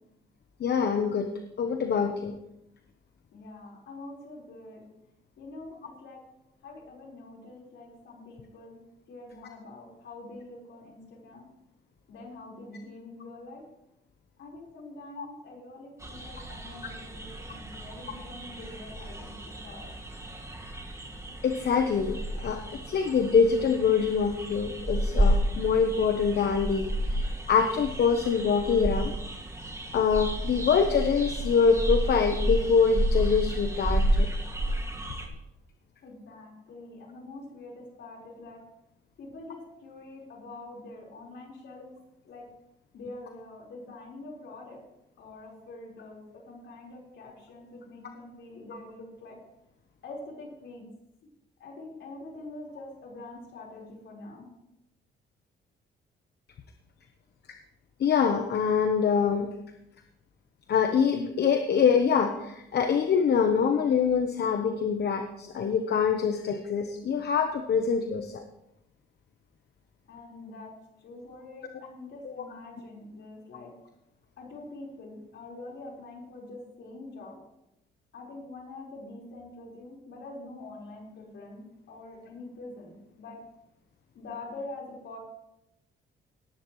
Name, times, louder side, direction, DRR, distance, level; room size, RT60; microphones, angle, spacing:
voice 1, 0.6-1.3 1.6-2.4 15.2-15.3 21.4-22.6 22.9-26.9 27.5-29.2 29.9-34.3 58.0-59.5 60.7-68.4 72.2-72.3, left 6 dB, 55° left, 6 dB, 1.1 m, -24 dB
voice 2, 3.3-4.8 5.4-6.2 6.6-8.8 9.1-11.5 12.1-13.6 14.4-19.9 36.0-38.6 39.2-41.9 42.2-42.4 42.9-44.8 45.2-49.4 50.0-50.9 51.6-54.5 70.1-70.7 71.0-73.7 74.4-77.4 78.1-83.4 84.1-85.2, left 2 dB, 70° left, -2 dB, 4.6 m, -45 dB
sound 1, 16.0-35.3, right 1 dB, 15° right, 2.1 m, -31 dB
18.0 x 11.0 x 3.2 m, 0.86 s
cardioid pair, 90°, 20 cm